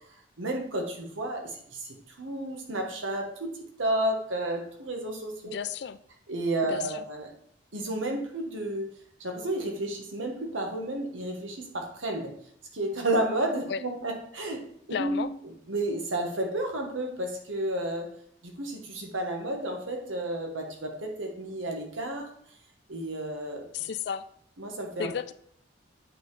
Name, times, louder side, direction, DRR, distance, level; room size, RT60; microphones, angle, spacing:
voice 1, 0.4-3.5 3.8-5.6 6.3-7.3 7.7-8.9 9.2-12.3 12.7-14.7 15.0-15.3 15.7-18.1 18.4-22.3 22.9-23.7 24.6-25.1, right 1 dB, 80° right, 2 dB, 1.4 m, -31 dB
voice 2, 5.4-6.0 6.6-7.0 13.7-13.8 14.9-15.3 23.7-24.2 25.0-25.3, left 7 dB, 55° left, 13 dB, 0.3 m, -33 dB
8.2 x 4.2 x 3.2 m, 0.66 s
head